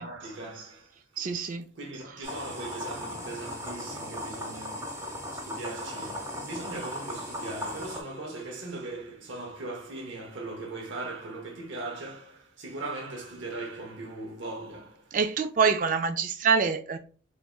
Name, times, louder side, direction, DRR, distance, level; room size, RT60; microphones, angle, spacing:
voice 1, 0.0-1.2 1.7-15.2, right 2 dB, 70° right, 0.8 m, -39 dB
voice 2, 1.2-1.7 15.1-17.0, right 5 dB, 40° right, 0.4 m, -25 dB
sound 1, 2.2-8.0, left 1 dB, 15° right, 0.9 m, -37 dB
4.1 x 3.5 x 2.3 m
head